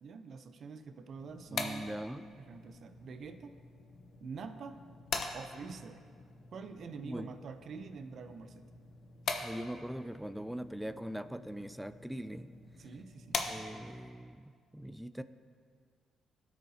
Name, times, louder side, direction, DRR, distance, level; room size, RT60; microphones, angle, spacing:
voice 1, 0.0-1.9 2.4-3.5 4.2-4.8 5.3-6.0 6.5-8.6 12.8-13.6, right 5 dB, 60° right, 8 dB, 0.6 m, -46 dB
sound 1, 1.2-14.1, left 4 dB, 60° left, 0.8 m, -43 dB
voice 2, 1.5-2.2 7.0-7.3 9.4-12.5 13.5-14.5 14.7-15.2, right 1 dB, 5° right, 13 dB, 0.3 m, -41 dB
17.5 x 6.3 x 2.8 m, 2.1 s
cardioid pair, 90°, 0 cm